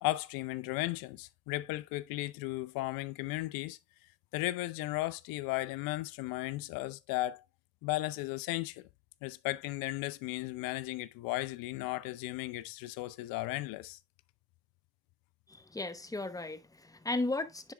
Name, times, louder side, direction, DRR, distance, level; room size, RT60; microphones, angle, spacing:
voice 1, 0.0-3.8 4.3-7.4 7.8-8.8 9.2-14.0, left 18 dB, 65° left, 0.6 m, -35 dB
voice 2, 15.5-17.7, left 2 dB, 10° left, 0.9 m, -35 dB
9.9 x 4.9 x 2.2 m
hypercardioid pair, 65°, 38 cm